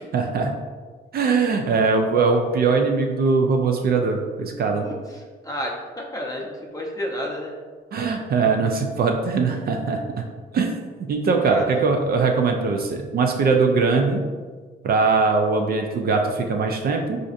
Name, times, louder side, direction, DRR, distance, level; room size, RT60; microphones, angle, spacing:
voice 1, 0.1-0.6 1.1-4.8 7.9-10.0 10.5-10.7 11.1-14.2 14.8-17.2, right 4 dB, 50° right, 3 dB, 0.4 m, -21 dB
voice 2, 4.8-7.5 11.4-11.9, equal, 15° left, -1 dB, 0.6 m, -31 dB
4.0 x 2.5 x 2.5 m, 1.5 s
cardioid pair, 90°, 20 cm